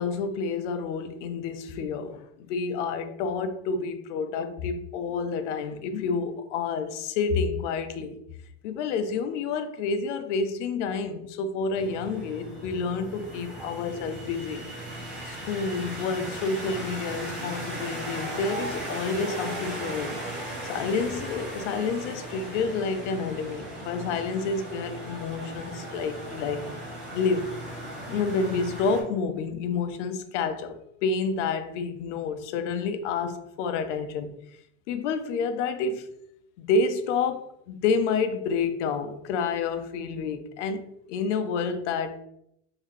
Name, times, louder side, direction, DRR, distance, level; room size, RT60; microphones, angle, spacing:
voice 1, 0.0-8.2 8.6-14.6 15.3-20.1 20.7-26.7 27.1-27.6 28.1-30.7 31.0-34.4 34.9-36.1 36.6-40.8 41.1-42.2, left 4 dB, 85° left, 0.6 m, -29 dB
sound 1, 11.7-29.0, right 1 dB, ahead, 0.8 m, -37 dB
3.8 x 2.7 x 3.1 m
cardioid pair, 175°, 35 cm